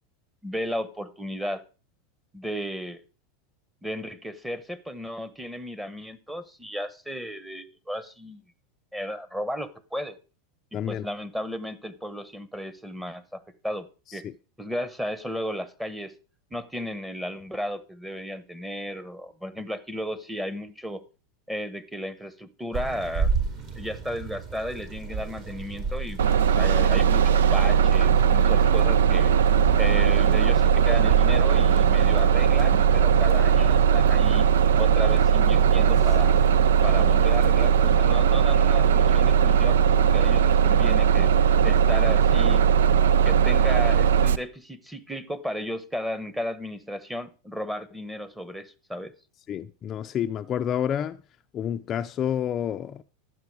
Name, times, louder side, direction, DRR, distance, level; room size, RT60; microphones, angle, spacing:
voice 1, 0.4-1.6 2.3-3.0 3.8-8.4 8.9-10.2 10.9-13.9 14.1-14.2 14.6-16.1 16.5-21.0 21.5-23.3 23.7-29.3 29.8-34.5 34.8-36.4 36.8-42.6 43.2-49.1, equal, 5° right, 1.1 m, -34 dB
voice 2, 10.7-11.1 49.5-51.2 51.5-53.0, left 9 dB, 35° left, 0.5 m, -29 dB
sound 1, 22.7-38.0, right 4 dB, 45° right, 3.7 m, -35 dB
Bus, 26.2-44.4, right 7 dB, 85° right, 0.4 m, -19 dB
11.5 x 7.7 x 4.8 m
hypercardioid pair, 110°, 0 cm